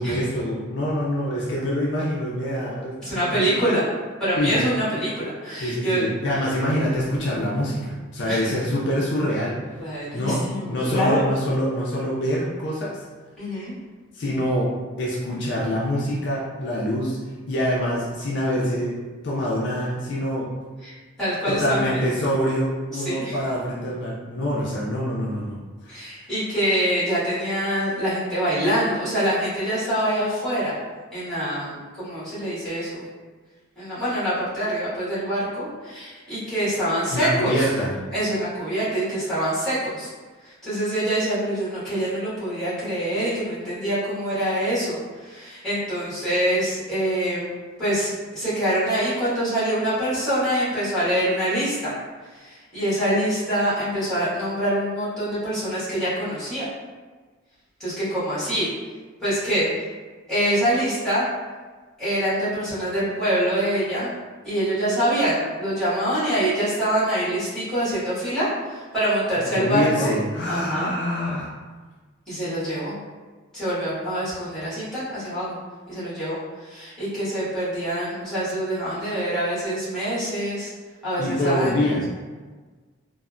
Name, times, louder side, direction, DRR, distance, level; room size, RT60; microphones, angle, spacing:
voice 1, 0.0-3.6 4.4-4.6 5.6-9.6 10.1-10.4 10.7-13.0 14.1-14.7 15.0-17.2 17.5-19.0 19.2-20.5 21.5-25.6 25.8-25.9 37.1-37.9 69.4-71.5 81.2-82.0, equal, 55° left, -5 dB, 0.4 m, -25 dB
voice 2, 3.0-3.9 4.2-6.1 8.3-8.4 9.8-11.3 13.4-13.7 20.8-20.9 21.2-22.0 22.9-23.4 25.9-30.8 31.1-33.1 33.8-37.7 38.1-40.1 40.4-47.5 47.8-51.9 52.3-56.6 57.8-58.7 59.2-59.9 60.3-61.2 62.0-64.1 64.4-70.1 70.5-70.9 72.3-72.9 73.5-75.6 75.9-76.4 76.6-80.7 81.0-81.9, right 1 dB, ahead, -12 dB, 1.3 m, -25 dB
3.2 x 2.0 x 2.4 m, 1.4 s
head